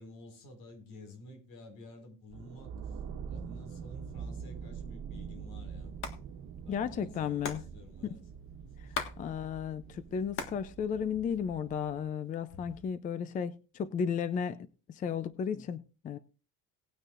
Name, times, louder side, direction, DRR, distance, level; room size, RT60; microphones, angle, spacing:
voice 1, 0.0-6.0 6.6-8.2 8.6-9.0, left 2 dB, 80° left, 5.6 m, -52 dB
sound 1, 2.3-12.1, right 6 dB, 50° right, 1.4 m, -44 dB
Hands, 5.8-6.2 6.4-6.5 6.7-9.2 9.5-10.6 11.0-11.8 12.3-12.9, left 5 dB, 40° left, 1.7 m, -39 dB
voice 2, 6.7-7.6 8.1-8.2 9.2-14.6 14.9-16.2, left 7 dB, 25° left, 0.5 m, -34 dB
19.0 x 9.3 x 2.5 m
cardioid pair, 170°, 33 cm